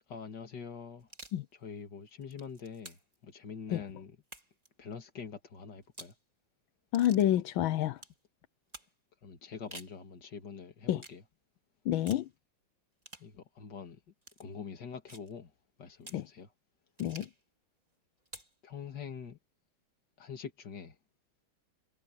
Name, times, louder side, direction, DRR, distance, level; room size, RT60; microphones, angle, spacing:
voice 1, 0.1-1.1 1.6-4.2 4.8-6.1 9.2-11.2 13.2-14.0 14.4-15.5 15.8-16.5 18.6-19.4 20.2-21.0, left 6 dB, 60° left, 2.6 m, -45 dB
sound 1, 1.0-1.4 2.1-3.2 4.2-4.7 5.8-6.2 6.9-7.3 8.0-8.2 8.7-8.9 9.5-10.0 11.0-11.2 12.1-12.3 13.0-13.3 14.2-14.4 15.1-15.3 16.0-16.3 17.0-17.4 18.2-18.6, right 1 dB, 20° right, 3.3 m, -50 dB
voice 2, 6.9-8.0 10.9-11.0 11.8-12.3 16.1-16.3 17.0-17.3, left 12 dB, 85° left, 1.5 m, -28 dB
omnidirectional pair, 2.2 m